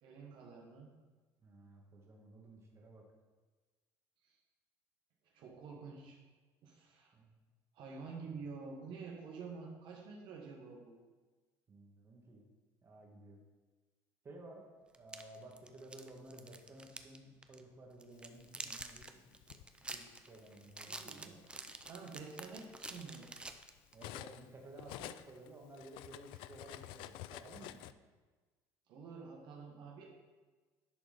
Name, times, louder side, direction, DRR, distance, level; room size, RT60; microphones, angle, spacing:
voice 1, 0.0-0.9 4.2-4.4 5.3-6.2 6.6-7.1 7.7-11.0 20.9-21.4 21.9-23.3 28.9-30.0, right 4 dB, 65° right, -1 dB, 1.4 m, -49 dB
voice 2, 1.4-3.1 7.1-7.4 8.3-8.4 11.7-12.4 12.8-13.4 14.2-14.7 14.9-21.4 23.9-27.8, right 2 dB, 30° right, 0 dB, 1.7 m, -55 dB
sound 1, 14.9-17.2 17.4-17.6 18.0-24.1, right 2 dB, 10° right, 0.5 m, -48 dB
Cutlery silverware, 18.4-19.7 20.6-20.8 21.2-24.5 24.8-27.9, left 14 dB, 75° left, 0.3 m, -50 dB
11.0 x 4.0 x 5.0 m, 1.3 s
cardioid pair, 115°, 9 cm